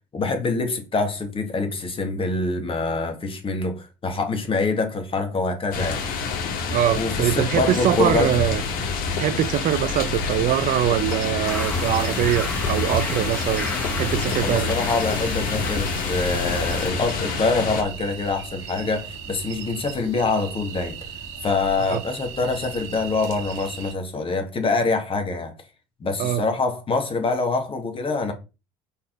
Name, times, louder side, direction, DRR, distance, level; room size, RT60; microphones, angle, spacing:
voice 1, 0.1-6.0 6.9-8.3 14.4-21.1 21.4-25.5 26.0-28.3, left 3 dB, 35° left, 2.2 m, -25 dB
sound 1, 5.7-17.8, left 4 dB, 60° left, 2.1 m, -27 dB
voice 2, 6.7-8.6 9.2-13.7 13.9-14.7 21.8-22.0 26.2-26.4, right 12 dB, 55° right, 0.7 m, -23 dB
sound 2, 10.5-23.9, right 6 dB, 80° right, 1.7 m, -38 dB
sound 3, 11.4-16.8, left 1 dB, 10° left, 2.1 m, -34 dB
5.5 x 4.3 x 5.3 m
hypercardioid pair, 75°, 16 cm